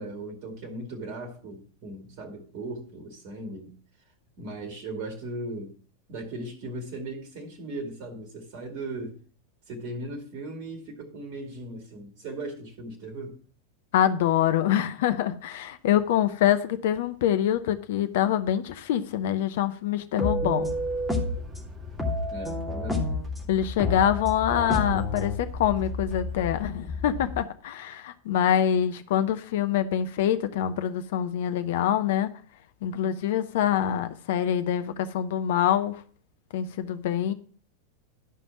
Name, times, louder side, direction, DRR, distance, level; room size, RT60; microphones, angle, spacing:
voice 1, 0.0-3.7 4.4-5.7 6.1-9.2 9.7-13.4 22.3-23.1, right 2 dB, 45° right, 2.2 m, -38 dB
voice 2, 13.9-20.7 23.5-32.3 32.8-36.0 36.5-37.3, left 10 dB, 55° left, 0.7 m, -25 dB
sound 1, 20.2-21.5 22.0-23.3 23.8-25.3, left 1 dB, ahead, 2.7 m, -28 dB
sound 2, 20.6-27.4, left 4 dB, 20° right, 2.0 m, -36 dB
12.0 x 5.4 x 5.8 m
figure-of-eight pair, 90°, 0 cm